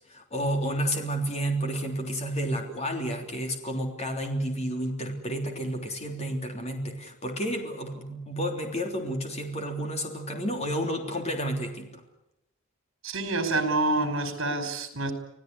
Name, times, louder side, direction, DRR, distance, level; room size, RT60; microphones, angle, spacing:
voice 1, 0.1-12.0, right 1 dB, 30° left, 3 dB, 3.4 m, -31 dB
voice 2, 13.0-15.1, right 2 dB, 60° right, 8 dB, 5.1 m, -27 dB
25.5 x 17.0 x 9.7 m, 0.83 s
head